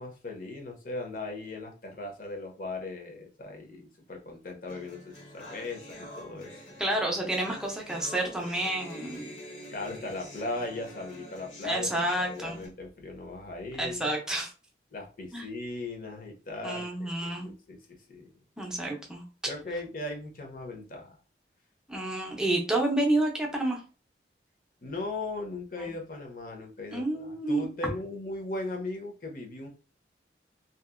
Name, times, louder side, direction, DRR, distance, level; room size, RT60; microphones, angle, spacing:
voice 1, 0.0-6.6 9.7-14.1 14.9-17.8 18.1-18.4 19.5-21.2 24.8-29.7, left 2 dB, 50° left, 2 dB, 0.7 m, -38 dB
sound 1, 4.7-12.7, equal, 85° left, 1.4 m, -46 dB
voice 2, 6.8-9.3 11.6-12.6 13.8-14.5 15.3-15.4 16.6-17.5 18.6-19.2 21.9-23.8 26.9-27.7, right 1 dB, 5° right, -1 dB, 0.5 m, -29 dB
2.8 x 2.5 x 2.4 m, 0.34 s
head